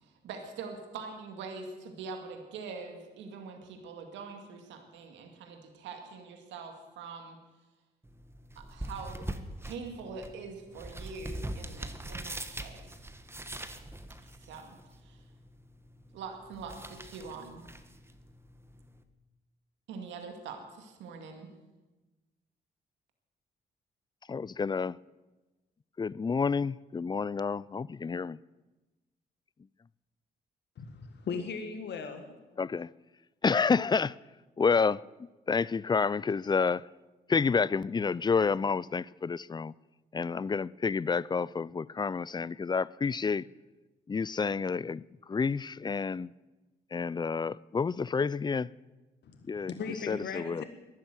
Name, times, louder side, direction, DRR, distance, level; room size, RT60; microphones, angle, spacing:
voice 1, 0.0-7.4 8.6-9.3 9.6-12.8 14.2-15.2 16.1-17.7 19.9-21.5, right 4 dB, 85° right, 2.1 m, -44 dB
sound 1, 8.0-19.0, right 1 dB, 15° right, 1.5 m, -43 dB
voice 2, 24.3-25.0 26.0-28.4 32.6-32.9 33.4-34.2 34.6-35.0 35.5-36.8 37.3-39.7 40.1-43.5 44.1-46.3 46.9-48.7 49.4-49.7 50.1-50.6, left 5 dB, 25° left, 0.4 m, -29 dB
voice 3, 30.8-32.2 49.2-49.4 49.7-50.6, left 5 dB, 70° left, 1.7 m, -37 dB
12.5 x 11.0 x 9.1 m
supercardioid pair, 55°, 19 cm